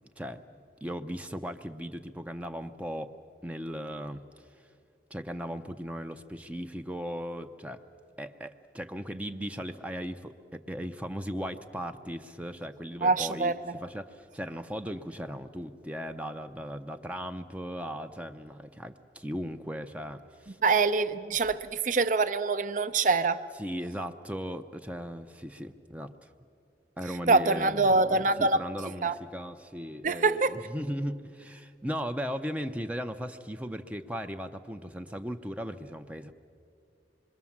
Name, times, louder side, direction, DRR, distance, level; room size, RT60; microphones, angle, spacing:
voice 1, 0.2-3.1 3.4-4.2 5.1-7.8 8.2-13.5 13.8-20.6 23.6-26.3 27.0-36.3, equal, 10° right, 7 dB, 0.6 m, -37 dB
voice 2, 13.0-13.8 20.6-23.4 27.3-28.6 29.0-29.2 30.0-30.6, right 3 dB, 45° right, 11 dB, 0.7 m, -25 dB
26.0 x 22.5 x 7.3 m, 2.4 s
head